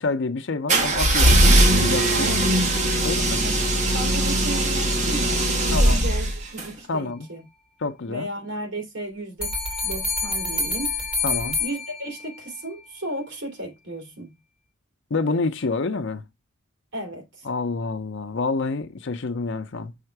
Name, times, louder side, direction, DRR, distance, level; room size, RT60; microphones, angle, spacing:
voice 1, 0.0-1.5 1.8-2.3 3.0-3.4 5.7-6.1 6.9-7.3 7.8-8.3 11.2-11.6 15.1-16.2 17.4-19.9, left 3 dB, 65° left, 0.6 m, -27 dB
sound 1, 0.7-6.7, right 1 dB, 35° right, 1.2 m, -20 dB
voice 2, 2.1-3.6 3.9-7.4 8.1-9.5 9.8-11.0 11.6-14.3 16.9-17.5, right 1 dB, 65° right, 2.6 m, -34 dB
sound 2, 9.4-12.5, left 3 dB, 5° right, 2.3 m, -27 dB
5.7 x 3.7 x 4.5 m
head